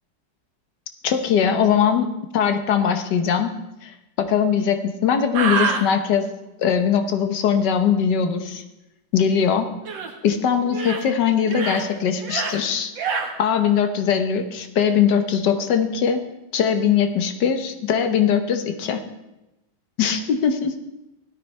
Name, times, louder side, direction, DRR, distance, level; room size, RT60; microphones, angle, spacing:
voice 1, 1.0-3.5 3.8-6.3 6.6-8.6 9.1-9.7 10.2-12.9 13.4-16.2 16.5-19.0 20.0-20.7, left 7 dB, 70° left, 7 dB, 1.6 m, -21 dB
sound 1, 5.3-5.8 9.8-10.1 10.7-11.0 11.4-11.8 12.2-12.6 13.0-13.3, right 5 dB, 85° right, 2.1 m, -25 dB
16.5 x 12.5 x 3.2 m, 0.96 s
omnidirectional pair, 2.0 m